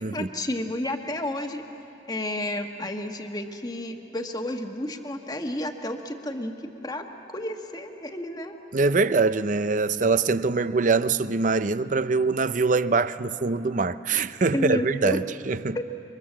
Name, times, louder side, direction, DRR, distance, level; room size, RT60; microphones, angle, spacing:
voice 1, 0.0-1.6 2.1-6.5 6.8-8.6 14.5-15.2 15.7-15.8, left 1 dB, 20° left, 1.3 m, -31 dB
voice 2, 8.7-15.8, right 4 dB, 40° right, 0.5 m, -23 dB
28.5 x 24.5 x 7.4 m
head